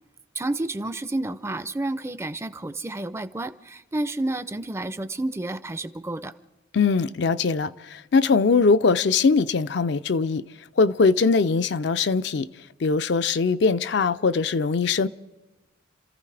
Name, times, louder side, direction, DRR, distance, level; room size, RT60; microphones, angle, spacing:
voice 1, 0.3-6.3, right 2 dB, 15° right, 0.4 m, -30 dB
voice 2, 6.7-10.4 10.8-12.5 12.8-15.1, left 4 dB, 60° left, 0.4 m, -21 dB
30.0 x 14.5 x 3.3 m
head